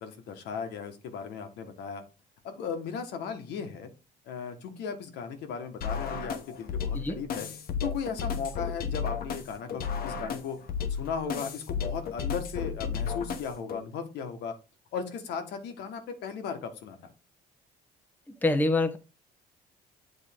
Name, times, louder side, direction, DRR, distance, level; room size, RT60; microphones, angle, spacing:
voice 1, 0.0-2.0 2.4-3.9 4.3-7.5 7.8-10.6 10.9-14.5 14.9-17.0, left 6 dB, 80° left, 1.4 m, -36 dB
sound 1, 5.8-13.8, left 6 dB, 60° left, 1.0 m, -33 dB
voice 2, 18.4-19.0, left 2 dB, 10° left, 0.8 m, -25 dB
8.1 x 3.7 x 3.6 m
cardioid pair, 110°, 17 cm